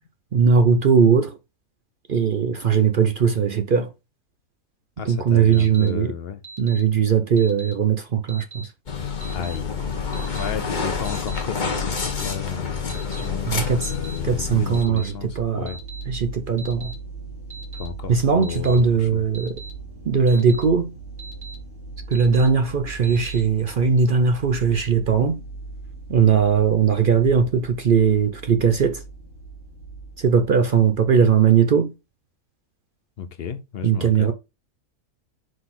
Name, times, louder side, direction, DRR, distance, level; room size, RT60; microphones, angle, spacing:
voice 1, 0.3-1.4 2.1-3.9 5.0-6.1 6.6-8.7 13.5-13.9 14.2-15.7 16.1-16.9 18.1-19.6 20.0-20.9 22.1-25.4 26.1-29.0 30.2-31.9 33.8-34.3, right 6 dB, 75° right, 0.4 m, -19 dB
voice 2, 5.0-6.4 9.3-9.7 10.3-15.8 17.7-19.2 33.2-34.3, left 7 dB, 70° left, 0.6 m, -33 dB
Alarm, 5.5-5.9 6.4-6.8 7.4-7.7 8.3-8.6 9.2-9.6 10.1-10.5 11.1-11.4 12.0-12.3 12.9-13.3 13.8-14.2 14.7-15.1 15.7-16.0 16.6-16.9 17.5-17.9 18.4-18.8 19.3-19.7 20.3-20.6 21.2-21.6 22.1-22.5 23.0-23.4, right 4 dB, 15° right, 1.5 m, -40 dB
sound 1, 8.9-14.8, left 5 dB, 35° left, 1.0 m, -28 dB
sound 2, 14.3-31.1, right 4 dB, 50° right, 2.0 m, -39 dB
5.1 x 4.0 x 5.7 m
omnidirectional pair, 1.7 m